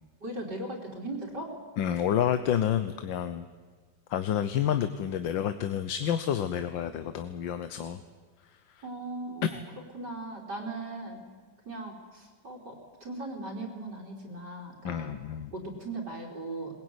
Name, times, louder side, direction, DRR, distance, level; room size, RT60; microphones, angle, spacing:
voice 1, 0.2-1.6 8.8-9.6 9.9-11.2 11.7-15.1 15.5-16.8, right 2 dB, 65° right, 2 dB, 4.3 m, -38 dB
voice 2, 1.8-3.5 4.1-8.0 8.7-8.8 9.4-9.5 14.8-15.5, left 9 dB, 90° left, 11 dB, 1.7 m, -29 dB
21.5 x 20.5 x 9.7 m, 1.4 s
omnidirectional pair, 2.0 m